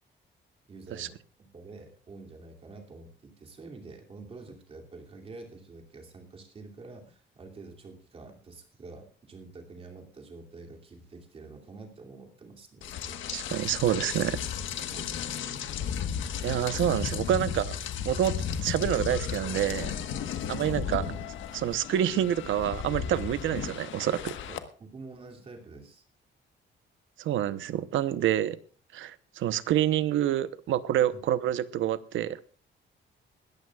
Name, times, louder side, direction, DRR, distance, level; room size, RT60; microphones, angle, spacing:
voice 1, 0.7-1.2 1.5-13.2 14.9-15.1 18.4-18.6 20.6-21.2 24.5-26.0 31.1-31.2, right 3 dB, 30° right, 2 dB, 2.7 m, -47 dB
Rain, 12.8-24.6, left 8 dB, 85° left, 1.4 m, -34 dB
voice 2, 13.3-14.4 16.4-17.8 18.0-18.4 18.6-20.0 20.5-21.0 21.6-24.4 27.2-28.6 28.9-32.4, right 11 dB, 90° right, 14 dB, 0.9 m, -27 dB
20.5 x 14.0 x 2.4 m, 0.40 s
cardioid pair, 180°, 19 cm